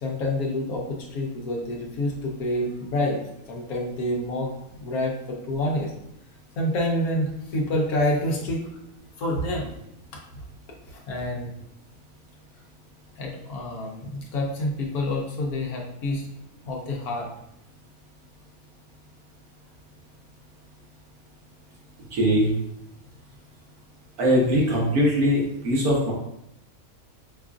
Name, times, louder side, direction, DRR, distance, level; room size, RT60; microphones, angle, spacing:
voice 1, 0.0-3.2 3.5-4.5 4.8-5.9 6.6-8.7 9.2-9.7 10.9-11.5 13.2-16.2 16.6-17.3, left 1 dB, 85° left, -1 dB, 1.2 m, -27 dB
voice 2, 22.1-22.5 24.2-26.1, equal, 85° right, -4 dB, 1.6 m, -21 dB
5.1 x 2.4 x 2.4 m, 0.79 s
omnidirectional pair, 1.5 m